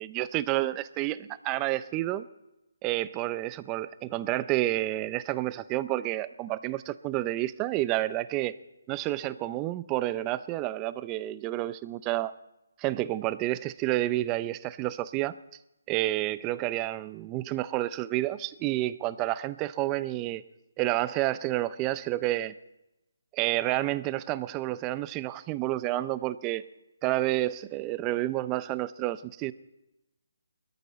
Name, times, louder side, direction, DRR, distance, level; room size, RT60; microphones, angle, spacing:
voice 1, 0.0-2.3 2.8-8.5 8.9-12.3 12.8-15.3 15.9-20.4 20.8-22.5 23.3-26.6 27.0-29.5, right 16 dB, 15° right, 16 dB, 0.5 m, -29 dB
21.0 x 13.5 x 4.2 m, 0.94 s
hypercardioid pair, 160°, 0 cm